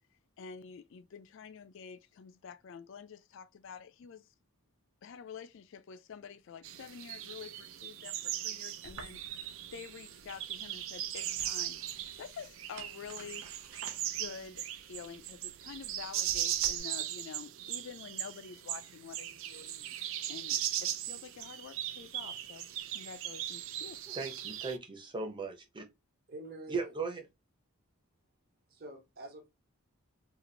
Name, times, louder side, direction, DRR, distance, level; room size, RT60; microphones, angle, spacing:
voice 1, 0.4-4.3 5.0-9.2 9.7-11.8 12.2-13.5 14.2-20.0 20.3-24.0, left 6 dB, 60° left, 0.4 m, -48 dB
sound 1, 6.6-24.8, right 12 dB, 65° right, 0.4 m, -38 dB
sound 2, 8.8-16.8, right 3 dB, 90° right, 0.9 m, -54 dB
voice 2, 24.1-25.8 26.7-27.2, right 4 dB, 20° right, 0.7 m, -37 dB
voice 3, 26.3-27.0 28.7-29.5, right 1 dB, 45° right, 1.1 m, -46 dB
3.0 x 2.4 x 3.9 m
head